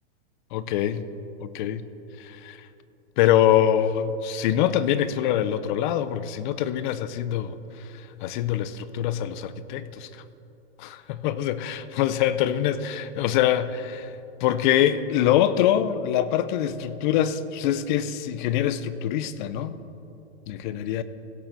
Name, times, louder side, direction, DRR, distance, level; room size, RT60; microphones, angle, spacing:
voice 1, 0.5-1.1 1.4-1.9 2.2-2.7 3.2-10.1 10.8-14.1 14.4-19.8 20.5-21.0, left 10 dB, 45° left, 14 dB, 0.6 m, -24 dB
17.0 x 7.9 x 4.0 m, 2.7 s
hypercardioid pair, 125°, 33 cm